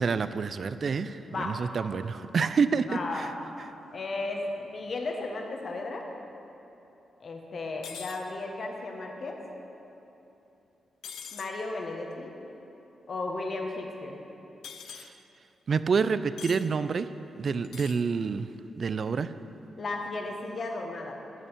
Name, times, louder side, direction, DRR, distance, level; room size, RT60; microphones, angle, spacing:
voice 1, 0.0-3.3 14.9-15.1 15.7-17.1 17.4-18.5 18.8-19.3, right 5 dB, 55° right, 13 dB, 0.4 m, -28 dB
voice 2, 1.2-1.6 2.9-3.3 3.9-6.0 7.2-9.4 11.3-12.3 13.1-14.2 19.8-21.2, left 2 dB, 50° left, 2 dB, 1.4 m, -34 dB
sound 1, 7.8-8.2 11.0-11.5 14.6-15.1 16.4-16.6 17.6-18.0, left 7 dB, 85° left, 0.6 m, -42 dB
9.0 x 6.9 x 8.3 m, 2.9 s
cardioid pair, 90°, 0 cm